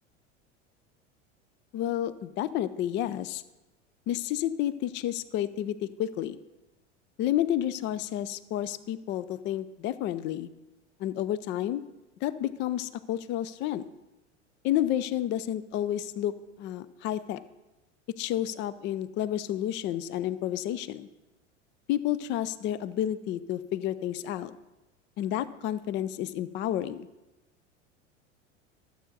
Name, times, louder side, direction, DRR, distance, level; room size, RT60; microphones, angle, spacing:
voice 1, 1.7-3.4 4.1-6.4 7.2-10.5 11.0-11.8 12.2-13.9 14.6-16.3 16.6-17.4 18.2-21.1 21.9-24.5 25.2-27.1, left 12 dB, 30° left, 16 dB, 0.4 m, -30 dB
12.0 x 7.8 x 4.0 m, 1.0 s
figure-of-eight pair, 80°, 36 cm